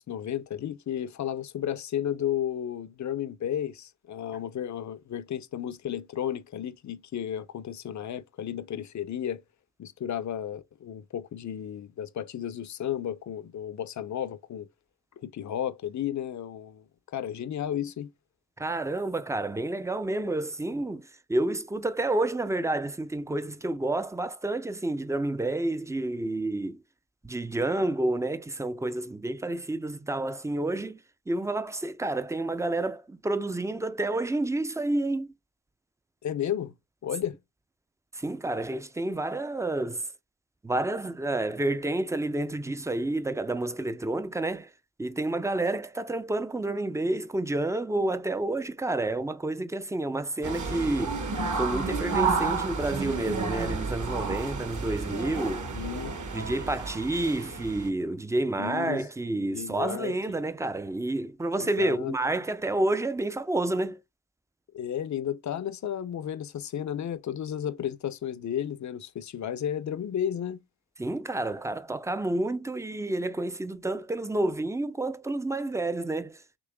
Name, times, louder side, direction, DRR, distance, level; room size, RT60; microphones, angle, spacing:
voice 1, 0.0-9.4 9.8-14.7 15.2-18.1 36.2-36.7 37.0-37.4 55.6-56.1 58.6-59.0 59.4-60.1 61.6-62.1 64.7-70.6, left 10 dB, 45° left, 0.6 m, -33 dB
voice 2, 18.6-26.8 27.2-31.0 31.3-35.3 38.1-40.1 40.6-44.7 45.0-51.2 51.6-55.7 56.3-64.0 71.0-76.4, right 2 dB, 10° right, 0.5 m, -29 dB
Train arrival, 50.4-57.9, right 4 dB, 50° right, 1.2 m, -31 dB
6.1 x 3.1 x 2.2 m
cardioid pair, 55°, 40 cm